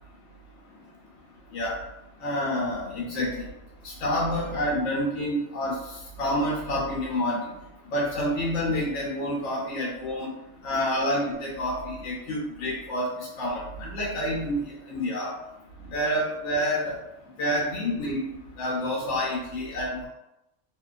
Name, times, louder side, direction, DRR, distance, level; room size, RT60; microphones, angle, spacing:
voice 1, 2.2-3.4 3.8-5.8 6.2-7.4 7.9-10.3 10.6-15.3 15.9-16.9 17.4-18.3 18.6-20.1, equal, 75° left, -4 dB, 0.9 m, -28 dB
2.4 x 2.2 x 2.3 m, 0.90 s
omnidirectional pair, 1.3 m